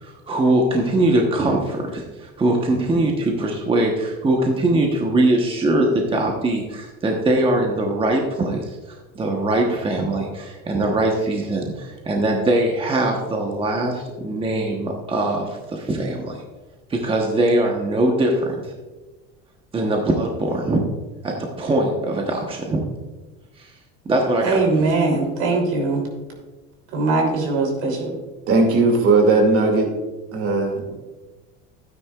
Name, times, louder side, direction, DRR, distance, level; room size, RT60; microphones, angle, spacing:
voice 1, 0.0-16.4 16.9-18.6 19.7-20.8 21.2-22.8 23.6-23.7 24.0-24.9, right 1 dB, 15° right, 1 dB, 1.1 m, -22 dB
voice 2, 24.4-26.0 26.9-28.1, right 3 dB, 70° right, 1 dB, 3.2 m, -21 dB
voice 3, 28.5-29.9 30.3-30.9, right 3 dB, 45° right, 3 dB, 2.4 m, -17 dB
12.5 x 9.5 x 2.4 m, 1.2 s
cardioid pair, 130°, 30 cm